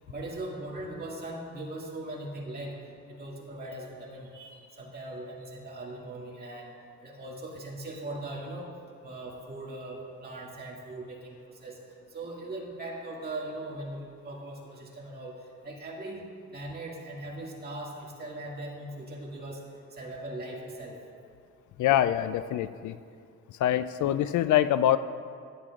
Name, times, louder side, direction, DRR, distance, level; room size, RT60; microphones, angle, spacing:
voice 1, 0.1-2.8 3.1-6.7 7.0-8.7 9.0-11.8 12.1-15.4 15.6-16.3 16.5-19.6 20.0-21.0, right 1 dB, 35° right, -3 dB, 2.1 m, -39 dB
voice 2, 21.8-23.0 23.6-25.0, left 12 dB, 85° left, 12 dB, 0.5 m, -24 dB
16.5 x 10.5 x 2.4 m, 2.2 s
cardioid pair, 130°, 29 cm